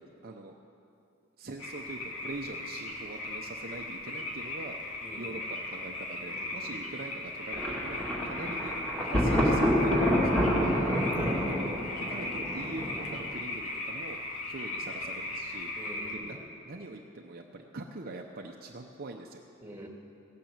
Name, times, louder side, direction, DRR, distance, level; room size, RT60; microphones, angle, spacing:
voice 1, 0.2-0.5 1.4-4.7 5.2-10.8 12.0-14.2 14.5-15.7 16.1-19.4, right 2 dB, 45° right, 1 dB, 0.8 m, -43 dB
sound 1, 1.6-16.1, left 2 dB, 70° left, 2.5 m, -38 dB
voice 2, 5.0-5.4 6.2-7.0 10.6-11.8 15.8-16.5 19.6-19.9, equal, 10° right, 0 dB, 2.0 m, -43 dB
Thunder, 7.5-13.3, equal, 5° left, 2.5 m, -28 dB
17.5 x 9.1 x 7.3 m, 2.6 s
head